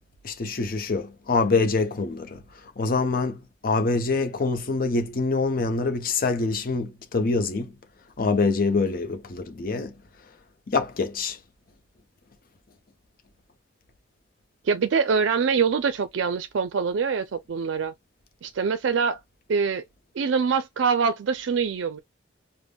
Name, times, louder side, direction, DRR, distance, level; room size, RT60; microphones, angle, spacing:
voice 1, 0.2-2.4 2.8-7.7 8.2-9.9 10.7-11.4, left 3 dB, 50° left, 0.6 m, -25 dB
voice 2, 14.6-17.9 18.4-19.2 19.5-19.8 20.1-22.0, right 5 dB, 85° right, 0.4 m, -24 dB
5.1 x 2.1 x 2.2 m
head